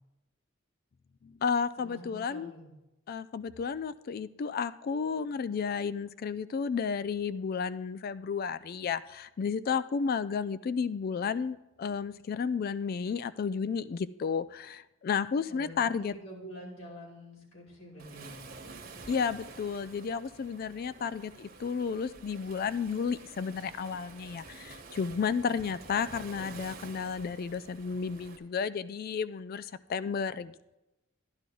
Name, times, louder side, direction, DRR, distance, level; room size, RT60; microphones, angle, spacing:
voice 1, 1.2-2.5 3.1-16.1 19.1-30.7, left 6 dB, 45° left, 14 dB, 0.3 m, -32 dB
voice 2, 1.8-2.7 15.5-18.4 25.4-25.6, equal, 80° left, -3 dB, 3.3 m, -47 dB
Waves surf, 18.0-28.4, right 3 dB, 45° right, 1.4 m, -49 dB
11.5 x 10.5 x 3.8 m, 0.96 s
head